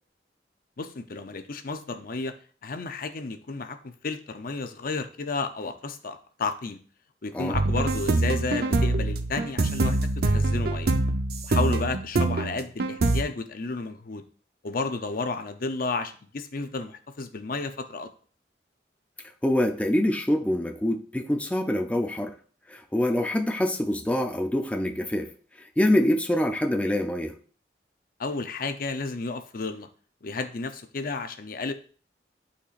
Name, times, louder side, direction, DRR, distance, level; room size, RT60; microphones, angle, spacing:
voice 1, 0.8-2.3 2.6-6.8 7.2-11.0 11.4-14.2 14.6-18.1 28.2-29.9 30.2-31.7, left 3 dB, 55° left, 8 dB, 0.7 m, -32 dB
sound 1, 7.5-13.2, right 2 dB, 60° right, 0.7 m, -24 dB
voice 2, 19.4-22.3 22.7-25.3 25.8-27.3, left 1 dB, 10° left, 3 dB, 0.5 m, -25 dB
11.5 x 4.3 x 2.5 m, 0.41 s
head